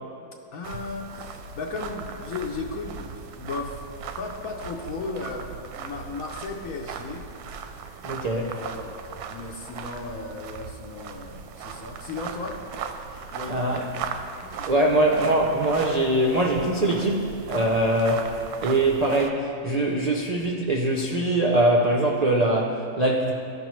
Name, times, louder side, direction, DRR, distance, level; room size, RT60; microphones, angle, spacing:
voice 1, 0.5-3.8 4.2-7.3 8.3-8.9 9.3-12.6 13.3-14.1 14.3-14.7, left 3 dB, 70° left, 1 dB, 1.1 m, -35 dB
sound 1, 0.6-19.3, right 6 dB, 90° right, 1.1 m, -38 dB
voice 2, 8.0-8.5 13.5-13.9 14.7-18.4 18.6-23.3, right 1 dB, 70° right, 0 dB, 0.3 m, -22 dB
14.0 x 5.3 x 3.1 m, 2.7 s
omnidirectional pair, 1.6 m